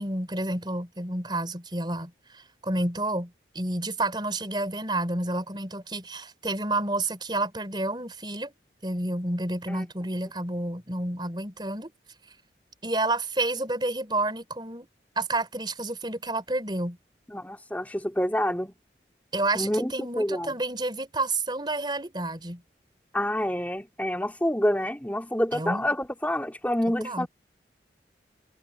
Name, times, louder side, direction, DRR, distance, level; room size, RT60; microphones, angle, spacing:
voice 1, 0.0-8.5 8.8-11.9 12.8-14.9 15.2-17.0 19.3-22.6 25.5-25.9 27.0-27.3, right 2 dB, 25° right, 5.1 m, -30 dB
voice 2, 17.3-18.7 19.5-20.5 23.1-27.3, left 1 dB, 10° left, 2.7 m, -27 dB
head